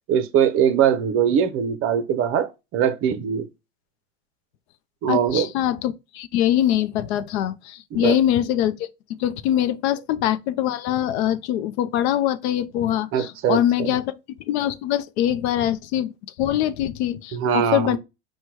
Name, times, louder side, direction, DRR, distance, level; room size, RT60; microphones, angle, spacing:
voice 1, 0.1-3.5 5.0-5.5 7.9-8.1 13.1-13.9 17.3-18.0, right 8 dB, 40° right, 0.5 m, -21 dB
voice 2, 5.1-8.9 9.2-14.2 14.5-16.1 16.4-18.0, left 11 dB, 70° left, 0.5 m, -23 dB
4.3 x 2.2 x 4.5 m
supercardioid pair, 130°, 34 cm